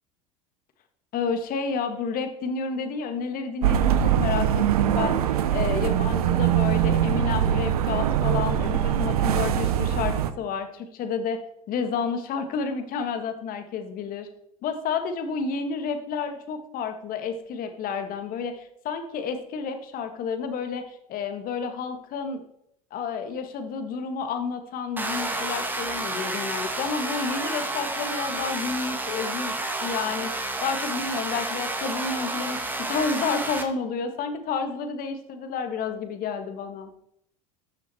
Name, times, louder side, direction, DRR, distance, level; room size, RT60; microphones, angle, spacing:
voice 1, 1.1-11.4 11.7-14.3 14.6-22.4 22.9-36.9, left 5 dB, 50° left, 7 dB, 1.7 m, -30 dB
sound 1, 3.6-10.3, right 10 dB, 85° right, 0.7 m, -22 dB
sound 2, 25.0-33.6, right 2 dB, 10° right, 1.7 m, -30 dB
13.0 x 6.4 x 4.3 m, 0.76 s
hypercardioid pair, 80°, 19 cm